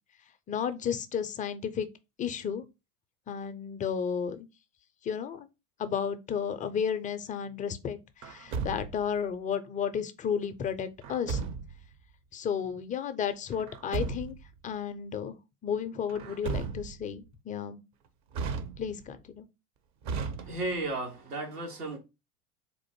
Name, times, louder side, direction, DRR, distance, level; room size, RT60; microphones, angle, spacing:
voice 1, 0.5-1.9 2.2-2.6 3.3-4.5 5.1-5.5 5.8-8.0 8.2-11.4 12.3-14.4 14.6-15.3 15.6-17.8 18.8-19.5, left 7 dB, 20° left, 0.4 m, -33 dB
Truck, 8.2-9.2 11.0-11.9 13.5-14.5 16.1-17.1 18.3-19.2 20.0-20.9, right 5 dB, 40° right, 0.6 m, -35 dB
voice 2, 20.4-22.0, right 2 dB, 90° right, 1.5 m, -34 dB
3.8 x 2.5 x 4.2 m
hypercardioid pair, 85°, 45 cm